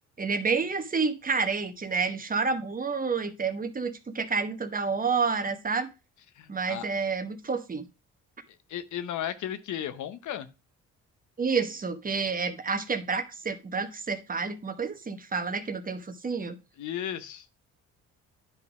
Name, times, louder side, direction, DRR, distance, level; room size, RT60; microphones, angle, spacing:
voice 1, 0.2-5.9 6.5-7.9 11.4-16.6, right 5 dB, 30° right, 1.0 m, -29 dB
voice 2, 6.4-6.9 8.7-10.5 16.8-17.5, left 10 dB, 75° left, 0.9 m, -35 dB
9.7 x 3.9 x 4.8 m
cardioid pair, 90°, 30 cm